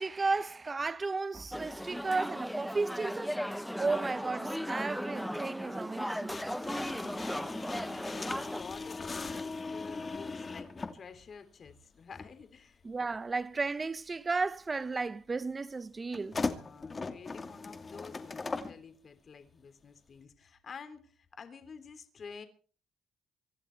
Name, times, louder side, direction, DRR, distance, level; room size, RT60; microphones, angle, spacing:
voice 1, 0.0-3.4 3.8-6.3 12.8-16.4, right 3 dB, 30° right, 1.0 m, -34 dB
sound 1, 1.5-8.6, equal, ahead, 0.8 m, -37 dB
voice 2, 6.3-12.8 16.4-22.5, left 5 dB, 50° left, 3.4 m, -50 dB
sound 2, 6.3-11.0 12.1-12.3 16.1-18.8, left 4 dB, 30° left, 2.5 m, -38 dB
25.0 x 11.5 x 4.7 m
cardioid pair, 90°, 0 cm